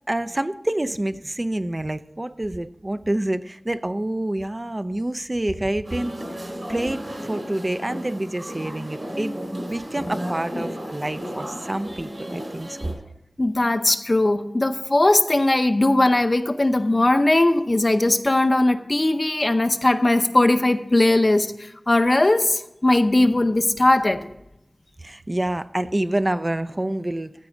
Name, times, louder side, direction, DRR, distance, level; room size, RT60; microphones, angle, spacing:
voice 1, 0.1-6.2 6.7-12.9 25.0-27.3, right 1 dB, 35° right, 0.5 m, -27 dB
sound 1, 5.8-12.9, equal, 75° right, 4.0 m, -34 dB
voice 2, 13.4-21.5 21.9-24.3, left 2 dB, 45° left, 0.7 m, -19 dB
13.5 x 4.8 x 6.3 m
wide cardioid pair, 50°, 0 cm